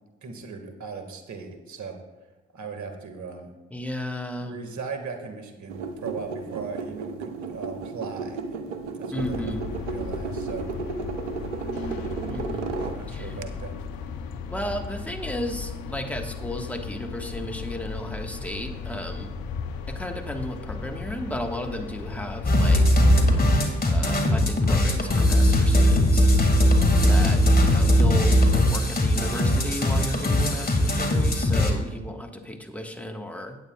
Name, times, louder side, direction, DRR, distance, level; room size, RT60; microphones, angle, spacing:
voice 1, 0.2-2.0 2.5-3.5 4.4-8.4 8.9-9.5 9.7-10.7 11.6-12.0 12.9-13.7, right 4 dB, 55° right, 5 dB, 1.9 m, -38 dB
voice 2, 3.7-4.6 9.1-9.6 12.2-12.7 13.1-13.3 14.5-19.3 19.9-23.0 23.8-26.3 27.1-33.6, equal, 5° left, 3 dB, 1.6 m, -34 dB
sound 1, 5.7-13.4, right 4 dB, 90° right, 0.6 m, -34 dB
sound 2, 9.2-23.7, left 5 dB, 70° left, 0.9 m, -36 dB
sound 3, 22.4-31.7, left 1 dB, 25° left, 2.2 m, -19 dB
16.0 x 8.9 x 2.4 m, 1.1 s
hypercardioid pair, 45°, 36 cm